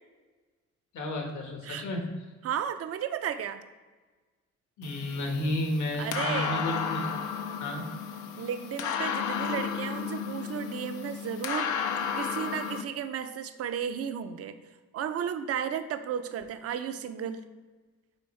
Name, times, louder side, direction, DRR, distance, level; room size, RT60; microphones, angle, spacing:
voice 1, 0.9-2.0 4.8-7.1 7.6-7.8, left 1 dB, 75° left, 2 dB, 1.3 m, -32 dB
voice 2, 2.4-3.6 6.0-6.7 8.4-11.7 12.1-14.6 14.9-17.4, right 8 dB, 50° right, 10 dB, 0.5 m, -34 dB
sound 1, 4.8-12.8, left 7 dB, 90° left, 0.6 m, -33 dB
9.0 x 3.5 x 3.2 m, 1.3 s
cardioid pair, 90°, 30 cm